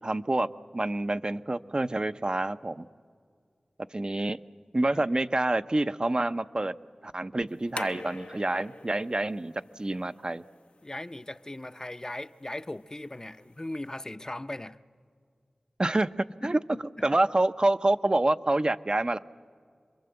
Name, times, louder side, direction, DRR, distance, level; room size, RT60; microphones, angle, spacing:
voice 1, 0.0-2.9 3.9-4.4 4.7-6.7 7.0-10.4 15.8-16.1 16.4-16.6 17.0-19.2, right 2 dB, 40° right, 0.6 m, -27 dB
sound 1, 7.5-14.1, left 3 dB, 65° left, 0.7 m, -47 dB
voice 2, 10.8-14.8 16.4-17.1, left 1 dB, 30° left, 0.6 m, -39 dB
28.0 x 22.0 x 7.8 m
cardioid pair, 40°, 2 cm